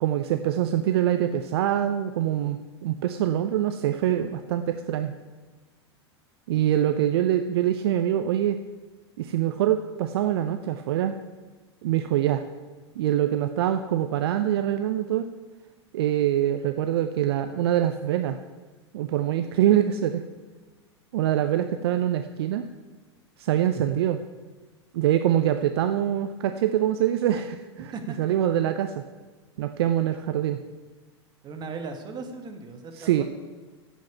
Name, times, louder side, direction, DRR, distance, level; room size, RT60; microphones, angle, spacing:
voice 1, 0.0-5.1 6.5-8.6 9.2-11.2 11.8-12.4 13.0-15.3 15.9-18.4 18.9-20.2 21.1-22.7 23.4-24.2 24.9-27.9 28.2-29.0 29.6-30.6 32.9-33.2, right 11 dB, 60° right, 9 dB, 0.6 m, -24 dB
voice 2, 27.9-28.4 31.4-33.2, right 4 dB, 30° right, 4 dB, 1.9 m, -37 dB
8.2 x 7.8 x 8.9 m, 1.3 s
figure-of-eight pair, 90°, 15 cm